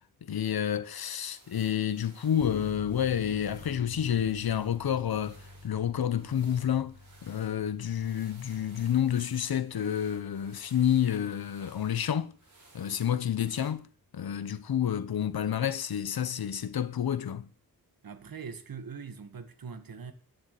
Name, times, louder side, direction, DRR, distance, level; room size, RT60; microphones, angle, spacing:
voice 1, 0.2-5.4 5.6-12.3 12.7-13.9 14.1-17.5, left 9 dB, 80° left, 1.0 m, -29 dB
sound 1, 0.9-13.7, right 3 dB, 55° right, 5.5 m, -59 dB
sound 2, 10.6-12.9, left 1 dB, 15° right, 6.0 m, -50 dB
voice 2, 18.0-20.1, right 6 dB, 70° right, 1.9 m, -42 dB
10.0 x 7.3 x 8.3 m
wide cardioid pair, 110°, 37 cm